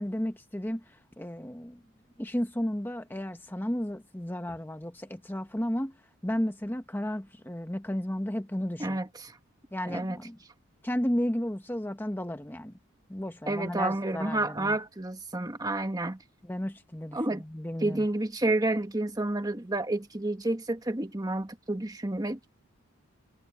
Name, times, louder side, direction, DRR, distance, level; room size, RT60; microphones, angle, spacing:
voice 1, 0.0-1.8 2.2-6.0 6.2-9.0 9.7-10.4 10.8-12.7 13.1-14.8 16.4-18.0, equal, 10° left, 1.0 m, -33 dB
voice 2, 8.8-9.4 9.8-10.2 13.5-16.2 17.1-17.4 17.8-22.4, right 2 dB, 20° right, 1.3 m, -30 dB
head